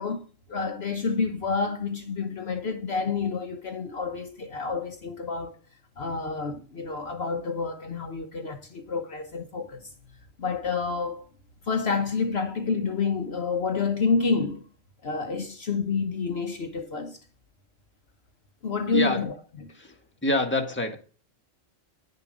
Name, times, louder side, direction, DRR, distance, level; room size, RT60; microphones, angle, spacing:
voice 1, 0.0-5.6 6.0-9.9 10.4-11.3 11.7-14.7 15.0-17.2 18.6-19.7, left 4 dB, 60° left, 1.2 m, -29 dB
voice 2, 18.9-19.2 19.7-20.0 20.2-21.0, left 2 dB, 10° left, 1.5 m, -26 dB
9.9 x 6.8 x 5.1 m
omnidirectional pair, 1.3 m